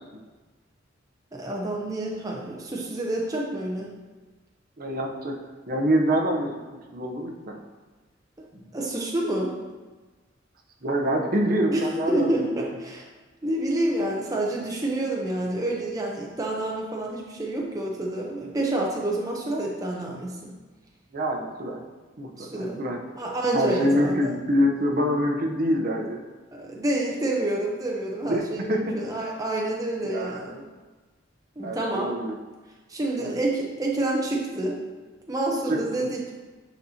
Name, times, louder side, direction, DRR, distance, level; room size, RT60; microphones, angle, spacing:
voice 1, 1.3-3.9 8.6-9.6 11.7-13.1 13.4-20.5 22.4-22.8 23.2-24.3 26.5-30.6 31.6-32.2 32.9-34.8 35.3-36.3, right 1 dB, 20° right, -2 dB, 0.7 m, -28 dB
voice 2, 4.8-5.4 5.7-6.6 6.9-7.6 10.8-12.6 21.1-21.8 22.2-23.0 23.5-26.2 28.3-28.4 28.7-28.8 30.0-30.6 31.6-32.3 33.2-33.4 35.7-36.1, equal, 50° right, 1 dB, 0.8 m, -25 dB
10.5 x 4.2 x 2.8 m, 1.3 s
head